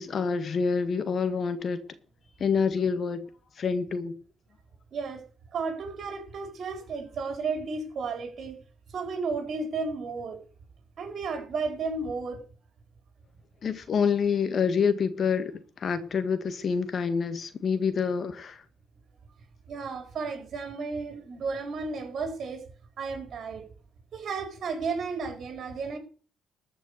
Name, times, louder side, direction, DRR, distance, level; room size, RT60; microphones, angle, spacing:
voice 1, 0.0-1.8 2.4-3.3 3.6-4.2 13.6-15.5 15.8-18.6, left 6 dB, 50° left, 1.8 m, -27 dB
voice 2, 4.9-5.2 5.5-8.6 8.9-10.4 11.0-12.4 19.7-22.6 23.0-23.7 24.1-26.0, right 4 dB, 60° right, 4.5 m, -33 dB
14.0 x 5.9 x 8.1 m
cardioid pair, 90°, 0 cm